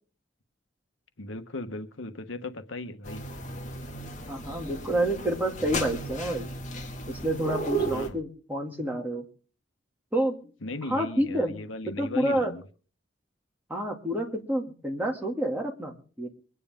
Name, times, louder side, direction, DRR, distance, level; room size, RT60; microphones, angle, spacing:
voice 1, 1.2-3.2 7.7-8.2 10.6-12.6, left 2 dB, 85° left, 8 dB, 1.2 m, -37 dB
sound 1, 3.0-8.1, right 2 dB, 40° left, 2.1 m, -34 dB
voice 2, 4.3-6.5 7.1-9.2 10.1-10.3 10.8-11.5 12.0-12.5 13.7-16.3, right 1 dB, 10° right, 0 dB, 2.4 m, -28 dB
24.5 x 9.8 x 3.6 m, 0.40 s
head